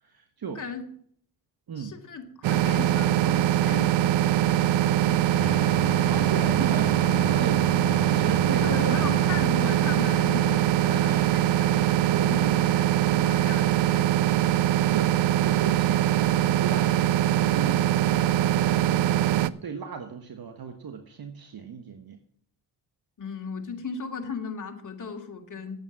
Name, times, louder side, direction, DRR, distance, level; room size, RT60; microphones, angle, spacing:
voice 1, 0.0-0.6 1.7-2.0 6.0-9.1 10.9-11.3 12.0-12.5 14.8-22.2, right 7 dB, 60° right, 6 dB, 1.4 m, -36 dB
voice 2, 1.8-5.8 8.6-14.4 23.2-25.8, left 5 dB, 45° left, 3 dB, 2.3 m, -37 dB
sound 1, 2.4-19.5, right 12 dB, 85° right, 0.6 m, -22 dB
sound 2, 5.4-9.4, left 4 dB, 20° left, 0.7 m, -36 dB
10.0 x 8.7 x 7.2 m, 0.62 s
cardioid pair, 65°, 41 cm